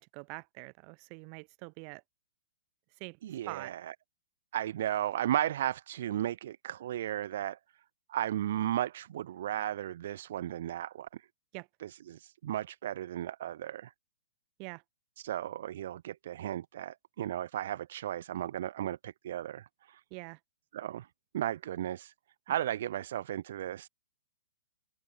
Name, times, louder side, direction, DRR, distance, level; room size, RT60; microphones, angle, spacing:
voice 1, 0.0-2.0 3.0-3.2 3.5-3.7 11.5-11.7 14.6-14.8 20.1-20.4, right 40 dB or more, 30° right, 6.9 m, -44 dB
voice 2, 3.2-3.9 4.5-7.6 8.1-11.3 11.8-13.9 15.2-20.0 20.7-21.1 21.3-22.1 22.5-23.9, right 12 dB, 55° right, 1.0 m, -35 dB
hypercardioid pair, 160°, 0 cm